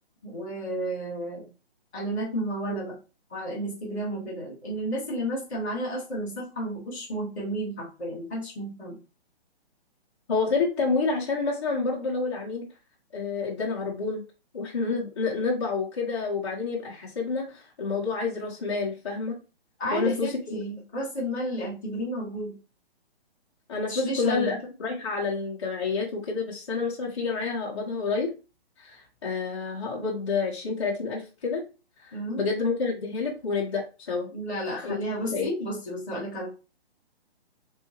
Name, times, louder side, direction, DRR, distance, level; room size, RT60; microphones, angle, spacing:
voice 1, 0.2-1.5 1.9-3.0 3.3-9.0 19.8-22.6 23.9-24.5 32.1-32.4 34.3-36.5, right 1 dB, ahead, -24 dB, 0.5 m, -32 dB
voice 2, 10.3-12.7 13.1-14.2 14.5-19.4 19.9-20.6 23.7-28.3 28.8-31.6 32.0-34.3 34.8-35.5, left 4 dB, 30° left, -5 dB, 1.0 m, -29 dB
3.5 x 2.6 x 3.0 m, 0.31 s
hypercardioid pair, 170°, 32 cm